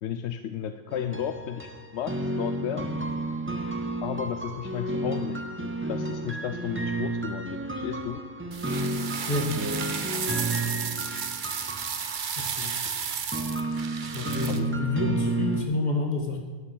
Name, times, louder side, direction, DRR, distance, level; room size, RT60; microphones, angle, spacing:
voice 1, 0.0-2.9 4.0-8.2 14.5-14.7, left 9 dB, 70° left, 9 dB, 0.9 m, -34 dB
sound 1, 0.9-15.6, right 2 dB, 10° right, 0.7 m, -32 dB
sound 2, 8.5-14.6, right 6 dB, 45° right, 0.8 m, -33 dB
voice 2, 9.3-9.6 12.4-12.8 14.1-16.4, left 2 dB, 35° left, 2 dB, 1.9 m, -28 dB
12.5 x 6.0 x 8.4 m, 1.4 s
omnidirectional pair, 1.2 m